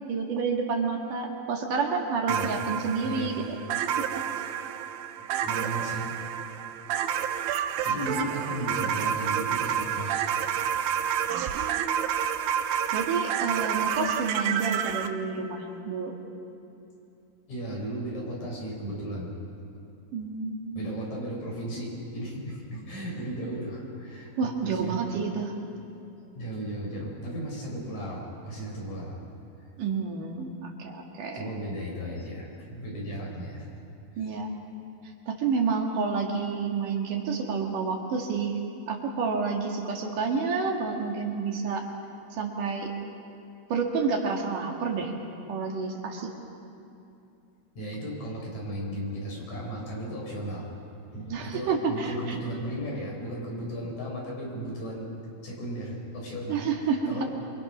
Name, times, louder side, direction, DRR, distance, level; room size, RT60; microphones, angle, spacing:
voice 1, 0.1-3.4 4.0-4.3 8.0-8.2 11.5-12.1 12.9-16.2 20.1-21.0 24.4-25.5 29.8-31.5 34.2-34.5 35.3-38.6 38.9-41.8 42.3-42.9 43.7-45.1 45.5-46.3 51.3-52.4 56.5-57.2, right 5 dB, 65° right, 1 dB, 3.3 m, -29 dB
sound 1, 2.3-15.1, right 9 dB, 90° right, 2.7 m, -29 dB
voice 2, 3.0-3.4 5.2-6.1 7.8-10.3 11.1-11.2 17.5-19.3 20.7-25.0 26.3-29.2 31.3-33.7 34.1-34.3 47.8-50.7 51.1-55.1 55.4-56.7 57.1-57.3, right 1 dB, 55° left, -2 dB, 6.2 m, -35 dB
26.5 x 24.0 x 6.1 m, 2.7 s
omnidirectional pair, 4.1 m